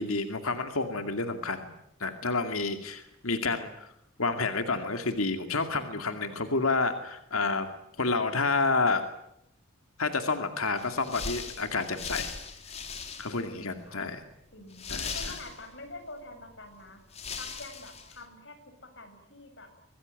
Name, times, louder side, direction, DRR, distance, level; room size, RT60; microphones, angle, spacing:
voice 1, 0.0-1.7 2.0-3.9 4.2-7.7 8.0-9.0 10.0-12.3 13.2-14.2 14.9-15.3, left 3 dB, 90° left, 7 dB, 2.4 m, -29 dB
sound 1, 10.8-13.5 13.9-14.0 14.7-15.9 16.7-16.8 17.1-18.2, left 5 dB, 30° left, 3.5 m, -39 dB
voice 2, 13.5-14.1 14.5-17.0 17.4-19.7, left 2 dB, 55° left, 6 dB, 7.4 m, -46 dB
25.5 x 19.5 x 9.6 m, 0.81 s
head